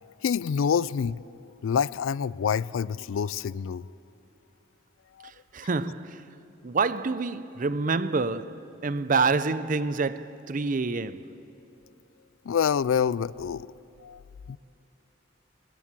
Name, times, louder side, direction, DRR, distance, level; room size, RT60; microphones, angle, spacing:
voice 1, 0.0-3.9 5.2-5.3 12.4-13.7 14.0-14.6, left 7 dB, 85° left, 0.4 m, -27 dB
voice 2, 5.2-6.2 6.6-11.3, right 4 dB, 40° right, 0.5 m, -27 dB
25.0 x 15.0 x 7.4 m
head